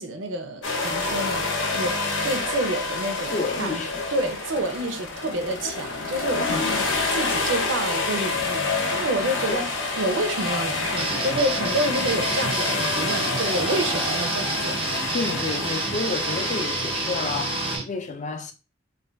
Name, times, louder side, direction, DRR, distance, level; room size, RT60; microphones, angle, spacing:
voice 1, 0.0-3.8 4.1-6.9 7.1-14.8, right 1 dB, 90° right, 0.6 m, -29 dB
sound 1, 0.6-17.8, left 3 dB, 85° left, 0.8 m, -28 dB
voice 2, 3.3-4.0 6.5-6.7 9.5-9.7 15.1-18.5, left 4 dB, 40° left, 0.4 m, -30 dB
sound 2, 11.0-17.8, right 4 dB, 30° right, 0.4 m, -29 dB
2.6 x 2.2 x 3.3 m
head